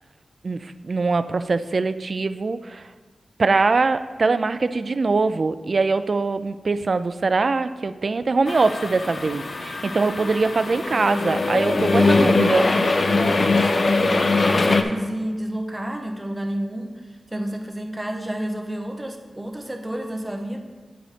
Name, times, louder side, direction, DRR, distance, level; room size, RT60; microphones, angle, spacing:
voice 1, 0.4-2.9 3.4-12.7, right 3 dB, 50° right, 12 dB, 0.3 m, -22 dB
sound 1, 8.5-14.8, left 3 dB, 50° left, 0.5 m, -21 dB
voice 2, 11.7-17.0 17.3-20.6, right 1 dB, 15° right, 3 dB, 0.8 m, -31 dB
8.8 x 4.0 x 4.9 m, 1.4 s
wide cardioid pair, 110°, 0 cm